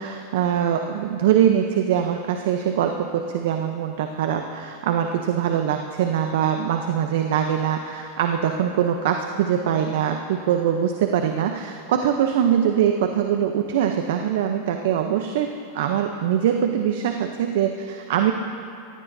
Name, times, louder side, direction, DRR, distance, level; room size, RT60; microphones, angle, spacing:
voice 1, 0.0-18.3, right 9 dB, 75° right, 5 dB, 0.7 m, -23 dB
17.5 x 15.5 x 2.7 m, 2.4 s
supercardioid pair, 120°, 0 cm